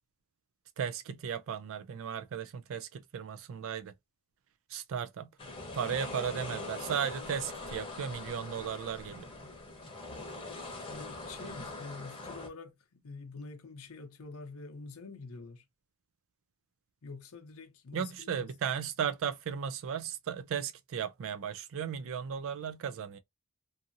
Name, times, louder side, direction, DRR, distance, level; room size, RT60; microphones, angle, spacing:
voice 1, 0.8-3.9 4.7-5.3 5.7-9.3 17.9-23.2, right 7 dB, 60° right, 0.3 m, -35 dB
sound 1, 5.4-12.5, left 2 dB, 25° left, 0.9 m, -42 dB
voice 2, 10.9-15.6 17.0-18.5, left 3 dB, 70° left, 0.6 m, -46 dB
2.6 x 2.6 x 2.5 m
head